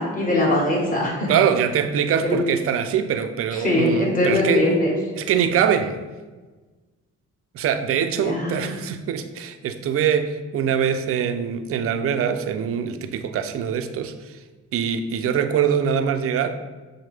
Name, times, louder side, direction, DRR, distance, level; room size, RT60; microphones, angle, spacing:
voice 1, 0.0-1.3 2.2-2.4 3.5-4.9 8.2-8.8, left 1 dB, 25° left, -3 dB, 1.4 m, -21 dB
voice 2, 1.3-4.7 5.2-6.0 7.5-14.4 14.7-16.6, right 8 dB, 50° right, 9 dB, 0.4 m, -23 dB
6.3 x 2.1 x 3.4 m, 1.3 s
cardioid pair, 90°, 30 cm